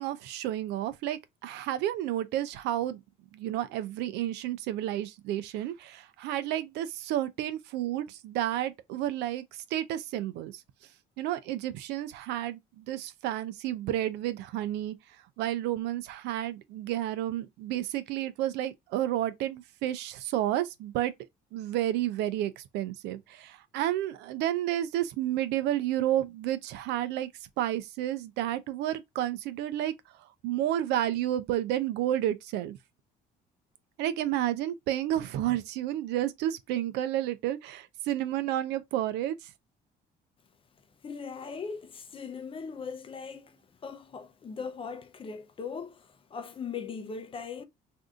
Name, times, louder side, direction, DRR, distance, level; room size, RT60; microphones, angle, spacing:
voice 1, 0.0-3.0 3.3-9.4 9.7-10.5 11.2-14.9 15.4-21.1 21.5-27.3 27.6-29.9 30.4-32.8 34.0-39.4, right 12 dB, 90° right, 0.5 m, -31 dB
voice 2, 41.0-43.6 43.8-47.6, left 5 dB, 30° left, 0.5 m, -39 dB
2.6 x 2.5 x 3.5 m
cardioid pair, 110°, 17 cm